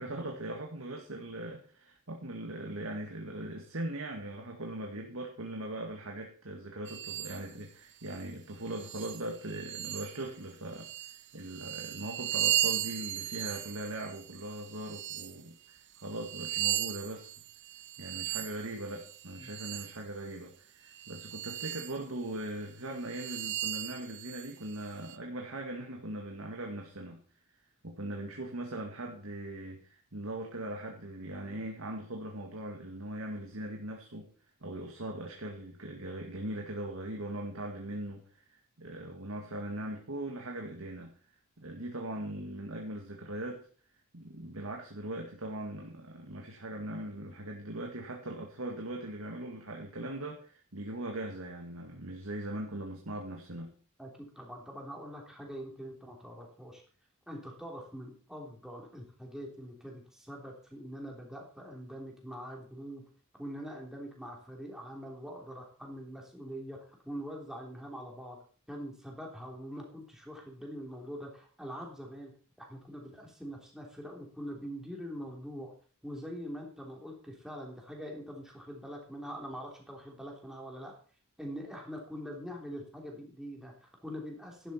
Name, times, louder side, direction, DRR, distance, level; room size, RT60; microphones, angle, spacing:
voice 1, 0.0-17.3 18.0-27.2 27.8-34.3 34.6-41.1 41.6-43.7 44.1-53.7, right 1 dB, 75° right, 1 dB, 2.0 m, -40 dB
sound 1, 6.9-7.4 8.1-8.2 8.7-10.3 10.7-15.4 15.9-20.0 20.9-22.0 22.4-22.5 23.0-25.2, right 13 dB, 55° right, 0.7 m, -36 dB
voice 2, 54.0-56.8 57.3-63.0 63.4-66.8 67.0-68.4 68.7-72.3 72.6-75.7 76.0-81.0 81.4-84.7, equal, ahead, -1 dB, 3.5 m, -43 dB
12.5 x 11.0 x 4.4 m, 0.42 s
head